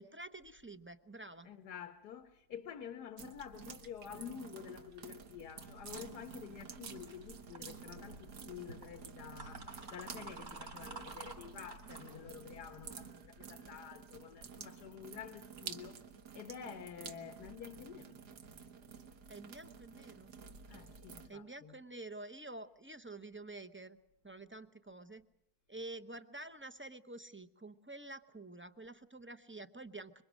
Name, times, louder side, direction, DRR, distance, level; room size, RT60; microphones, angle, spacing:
voice 1, 0.0-1.5 19.3-20.3 21.3-24.0 24.2-25.3 25.7-30.2, right 2 dB, 15° right, 0.3 m, -49 dB
voice 2, 1.4-16.0 16.3-18.2 20.7-21.8, left 9 dB, 85° left, 1.7 m, -49 dB
sound 1, 3.2-21.3, right 6 dB, 90° right, 1.9 m, -51 dB
sound 2, 5.4-12.9, right 2 dB, 65° right, 4.4 m, -52 dB
26.0 x 23.5 x 6.3 m
omnidirectional pair, 1.7 m